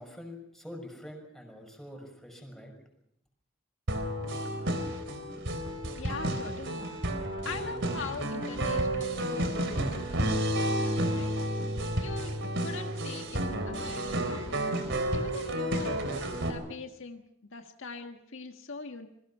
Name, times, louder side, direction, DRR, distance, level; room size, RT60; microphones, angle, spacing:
voice 1, 0.0-2.7, left 1 dB, ahead, 3 dB, 6.2 m, -45 dB
sound 1, 3.9-16.5, right 1 dB, 60° right, 3.6 m, -31 dB
voice 2, 5.7-6.9 7.4-11.5 11.7-14.7 15.1-16.0 16.4-19.1, left 4 dB, 65° left, 5 dB, 1.6 m, -42 dB
27.5 x 22.0 x 5.7 m, 0.77 s
head